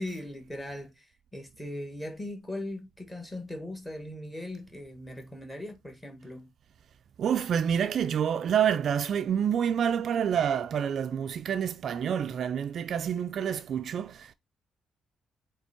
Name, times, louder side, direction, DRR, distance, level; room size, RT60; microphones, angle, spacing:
voice 1, 0.0-6.5, left 1 dB, 10° left, 1.7 m, -39 dB
voice 2, 7.2-14.3, right 8 dB, 50° right, 0.3 m, -28 dB
8.0 x 3.3 x 4.3 m
cardioid pair, 170°, 0 cm